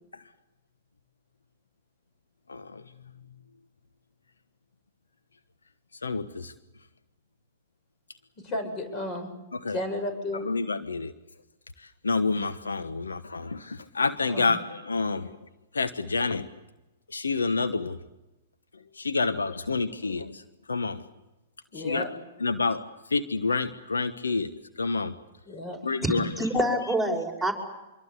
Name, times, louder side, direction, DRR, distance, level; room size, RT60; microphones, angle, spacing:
voice 1, 2.5-2.8 6.0-6.5 9.5-9.8 10.3-11.1 11.8-15.5 15.7-16.5 17.1-18.0 18.9-20.4 20.7-21.1 21.7-22.1 22.4-25.1 25.8-26.3, left 4 dB, 90° left, 11 dB, 1.2 m, -28 dB
voice 2, 8.4-9.3 9.7-10.4 14.3-14.6 21.7-22.1 25.5-25.8, left 1 dB, 35° left, 8 dB, 7.6 m, -33 dB
voice 3, 26.0-27.5, equal, ahead, 2 dB, 5.7 m, -26 dB
25.5 x 23.5 x 8.3 m, 1.0 s
hypercardioid pair, 115°, 0 cm